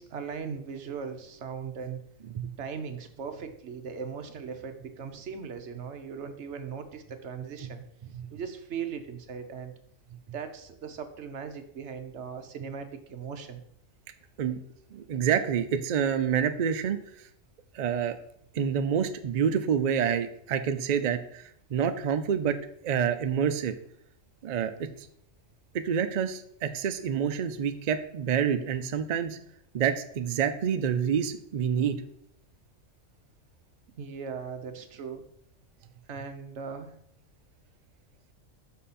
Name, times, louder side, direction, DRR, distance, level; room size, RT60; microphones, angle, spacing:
voice 1, 0.0-2.0 2.6-7.8 8.3-9.7 10.3-13.6 34.0-35.2 36.1-36.9, right 6 dB, 60° right, 7 dB, 1.1 m, -38 dB
voice 2, 14.9-17.0 17.7-18.2 18.5-21.4 21.7-22.6 22.8-23.8 24.4-24.9 25.7-29.4 29.7-32.0, right 8 dB, 85° right, 9 dB, 0.3 m, -27 dB
6.2 x 5.6 x 4.2 m, 0.70 s
omnidirectional pair, 1.4 m